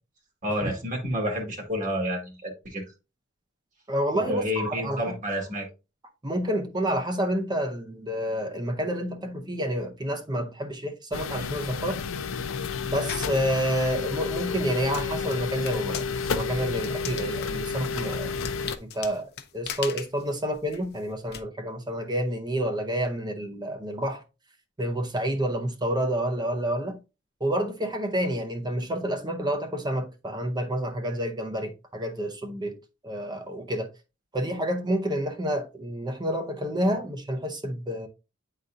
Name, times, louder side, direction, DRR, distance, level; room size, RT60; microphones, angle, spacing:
voice 1, 0.4-2.8 4.3-5.7, equal, 40° right, 1.8 m, -29 dB
voice 2, 3.9-5.2 6.2-12.0 12.9-18.3 18.8-19.3 19.5-24.2 24.8-27.0 27.4-32.8 33.0-33.9 34.3-38.1, equal, 20° right, 0.7 m, -29 dB
sound 1, 11.1-18.8, left 5 dB, 90° left, 0.6 m, -31 dB
sound 2, 13.1-13.4 14.0-21.4, left 8 dB, 55° left, 0.8 m, -40 dB
9.3 x 4.1 x 2.6 m
head